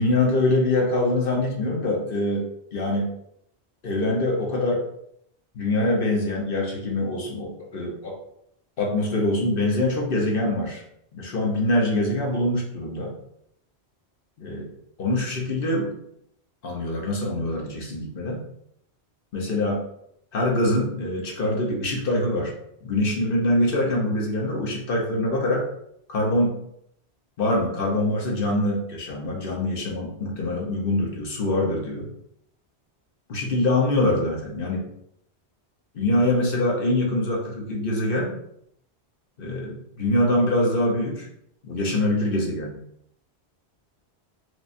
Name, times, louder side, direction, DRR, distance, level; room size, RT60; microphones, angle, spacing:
voice 1, 0.0-2.5 2.7-3.1 3.8-4.8 5.5-8.2 8.8-10.8 11.1-13.1 14.4-14.7 15.0-16.0 16.6-18.4 19.3-19.8 20.3-22.5 22.8-25.7 26.1-26.6 27.4-32.1 33.3-34.9 35.9-38.3 39.4-41.3 41.6-42.8, left 1 dB, 60° left, -1 dB, 1.0 m, -24 dB
4.9 x 2.2 x 2.6 m, 0.72 s
omnidirectional pair, 1.1 m